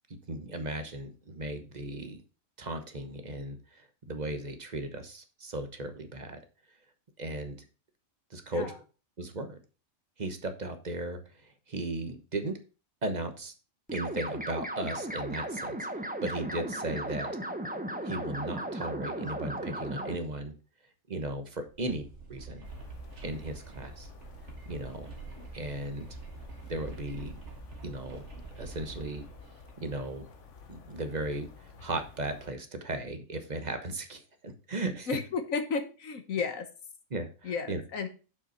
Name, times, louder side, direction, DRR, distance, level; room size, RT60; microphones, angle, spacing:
voice 1, 0.3-2.2 2.6-6.4 7.2-7.6 8.3-8.7 9.2-9.6 10.2-11.2 11.7-12.6 13.0-13.5 13.9-15.7 16.2-17.3 18.0-20.5 21.1-22.6 23.2-24.1 24.6-25.1 25.5-26.1 26.7-27.4 27.8-28.3 28.6-29.3 29.8-30.2 30.7-35.1 37.1-37.8, right 2 dB, 35° right, 7 dB, 1.2 m, -36 dB
sound 1, 13.9-20.2, right 1 dB, 10° right, 0.8 m, -36 dB
sound 2, 21.7-30.2, right 3 dB, 60° right, 1.7 m, -46 dB
sound 3, 22.6-32.5, left 5 dB, 65° left, 1.4 m, -52 dB
voice 2, 35.1-36.7 37.4-38.1, left 5 dB, 80° left, 8 dB, 1.6 m, -33 dB
7.2 x 5.6 x 5.7 m, 0.34 s
omnidirectional pair, 1.4 m